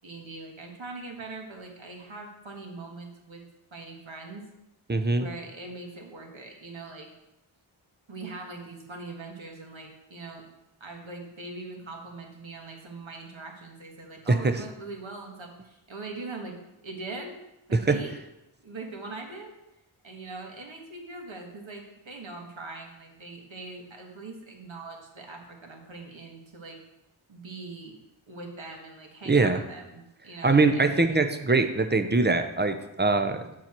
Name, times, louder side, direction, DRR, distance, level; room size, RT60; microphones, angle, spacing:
voice 1, 0.0-3.4 3.7-4.5 5.2-7.1 8.1-10.5 10.8-16.6 16.8-17.4 17.7-18.1 18.6-19.5 20.0-26.8 27.3-28.0 28.3-30.9, right 3 dB, 70° right, 1 dB, 1.6 m, -41 dB
voice 2, 4.9-5.3 14.3-14.6 17.7-18.0 29.3-29.6 30.4-33.5, right 3 dB, 20° right, 8 dB, 0.7 m, -23 dB
7.2 x 5.8 x 4.5 m, 0.90 s
wide cardioid pair, 45°, 49 cm